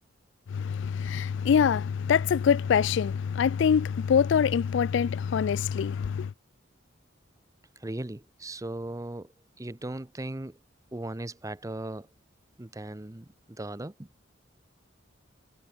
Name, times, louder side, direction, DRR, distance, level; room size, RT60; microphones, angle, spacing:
voice 1, 0.5-6.3, left 7 dB, 70° left, 0.3 m, -24 dB
voice 2, 7.8-9.3 9.6-10.6 10.9-12.1 12.6-14.1, right 1 dB, 15° right, 0.7 m, -37 dB
head